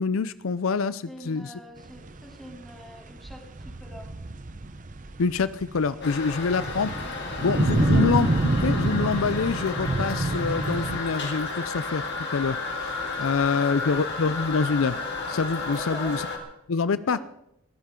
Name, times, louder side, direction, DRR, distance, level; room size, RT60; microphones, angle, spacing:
voice 1, 0.0-1.5 5.2-6.9 7.4-8.3 8.6-15.0 15.3-16.3 16.7-17.2, left 5 dB, 65° left, 15 dB, 0.5 m, -26 dB
voice 2, 1.1-4.1 7.7-8.1 13.5-14.0 15.7-16.1 17.1-17.2, equal, ahead, 0 dB, 3.1 m, -44 dB
sound 1, 1.9-11.0, right 2 dB, 35° right, 0.8 m, -27 dB
Toilet flush, 6.0-16.4, left 3 dB, 50° left, 3.6 m, -33 dB
21.5 x 16.0 x 3.8 m, 0.82 s
head